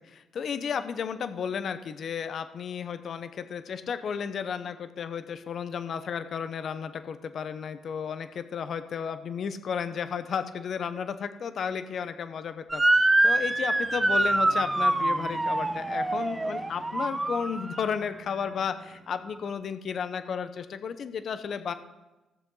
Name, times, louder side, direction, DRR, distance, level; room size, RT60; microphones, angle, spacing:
voice 1, 0.0-21.7, left 7 dB, 60° left, 10 dB, 0.8 m, -33 dB
Motor vehicle (road) / Siren, 12.7-18.0, right 2 dB, 15° right, 0.6 m, -25 dB
16.5 x 7.1 x 4.1 m, 1.1 s
cardioid pair, 90°, 0 cm